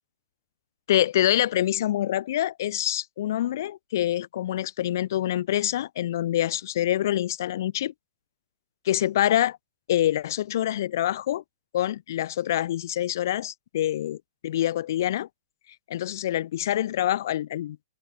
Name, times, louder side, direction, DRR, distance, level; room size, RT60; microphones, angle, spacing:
voice 1, 0.9-7.9 8.9-9.6 9.9-11.4 11.7-14.2 14.4-15.3 15.9-17.8, left 12 dB, 60° left, 5.7 m, -26 dB
hypercardioid pair, 115°, 2 cm